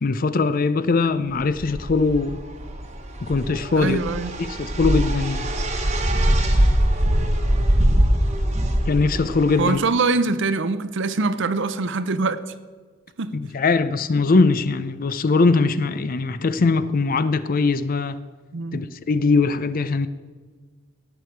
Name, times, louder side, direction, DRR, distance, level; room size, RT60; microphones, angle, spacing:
voice 1, 0.0-2.4 3.2-4.0 4.5-5.5 8.9-9.8 13.3-18.2 18.7-20.1, left 3 dB, 45° left, 0.5 m, -21 dB
sound 1, 1.4-9.7, right 1 dB, 35° right, 1.2 m, -22 dB
voice 2, 3.7-4.3 9.6-12.4 13.2-13.4 18.5-18.8, right 3 dB, 60° right, 0.6 m, -23 dB
18.0 x 6.6 x 4.5 m
head